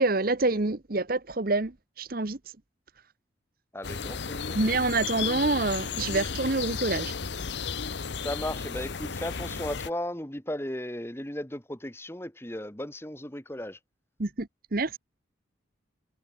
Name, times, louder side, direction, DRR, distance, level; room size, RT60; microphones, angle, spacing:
voice 1, 0.0-1.7 2.0-2.4 4.5-7.1 14.2-15.0, right 3 dB, 50° right, 1.0 m, -27 dB
voice 2, 3.7-4.6 8.2-13.8, left 1 dB, 10° left, 1.6 m, -35 dB
sound 1, 3.8-9.9, left 6 dB, 60° left, 0.9 m, -34 dB
head